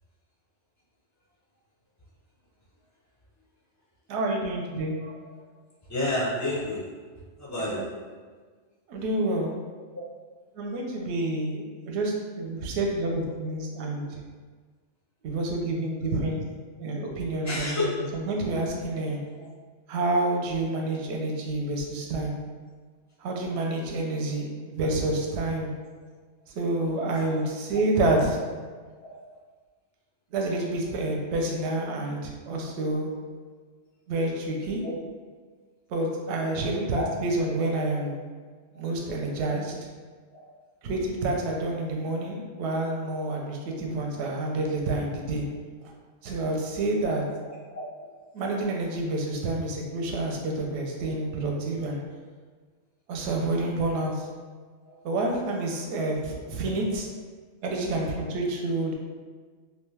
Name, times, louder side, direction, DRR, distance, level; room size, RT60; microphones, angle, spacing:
voice 1, 4.1-4.9 7.8-7.9 8.9-9.5 10.5-14.2 15.2-16.4 16.8-17.8 18.1-19.2 19.9-22.4 23.2-25.7 26.5-28.4 30.3-33.1 34.1-34.8 35.9-38.2 38.7-39.7 40.8-45.5 46.2-47.2 48.3-52.0 53.1-54.3 55.0-57.1 57.6-58.9, right 2 dB, 70° right, 0 dB, 0.8 m, -28 dB
voice 2, 5.9-6.9 7.4-7.9 13.9-14.0 17.5-18.0 19.4-19.5 27.1-27.4 29.0-29.3 34.8-34.9 36.6-37.1 40.3-40.5 47.0-47.1 47.4-48.2 54.8-54.9, left 1 dB, 25° left, -6 dB, 0.4 m, -32 dB
2.7 x 2.2 x 3.2 m, 1.5 s
omnidirectional pair, 1.3 m